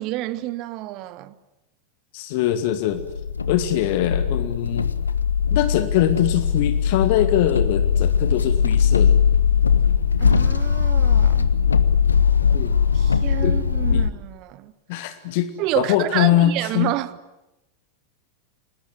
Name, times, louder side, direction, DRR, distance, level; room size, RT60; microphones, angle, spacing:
voice 1, 0.0-1.4 10.2-11.5 12.9-14.7 15.6-17.2, right 16 dB, 40° right, 1.3 m, -29 dB
voice 2, 2.1-3.0 3.5-4.9 5.5-9.2 12.5-12.8 13.4-13.6 13.9-14.1 14.9-16.9, left 12 dB, 50° left, 1.7 m, -22 dB
sound 1, 2.9-14.1, left 7 dB, 75° left, 1.2 m, -20 dB
29.5 x 20.0 x 9.7 m
figure-of-eight pair, 90°, 0 cm